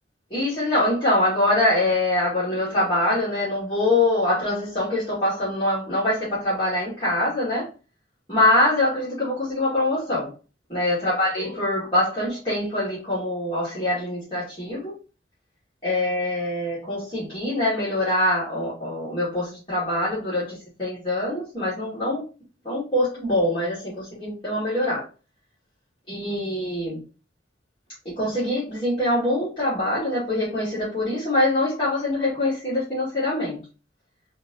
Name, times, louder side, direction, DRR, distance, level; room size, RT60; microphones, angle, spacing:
voice 1, 0.3-7.7 8.3-10.3 10.7-14.9 15.8-22.2 22.6-25.0 26.1-27.0 28.2-33.6, left 1 dB, 30° left, 2.4 m, -24 dB
4.9 x 3.0 x 3.0 m
head